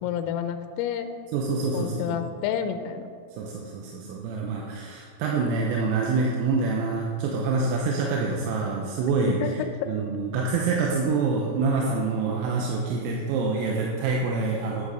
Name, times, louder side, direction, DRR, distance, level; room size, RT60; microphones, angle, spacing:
voice 1, 0.0-1.1 1.7-3.1 9.4-9.5 9.8-9.9, left 9 dB, 85° left, 8 dB, 3.3 m, -29 dB
voice 2, 1.3-2.2 3.4-9.4 9.9-14.9, right 4 dB, 85° right, -1 dB, 3.6 m, -26 dB
11.0 x 7.3 x 6.4 m, 2.1 s
omnidirectional pair, 5.9 m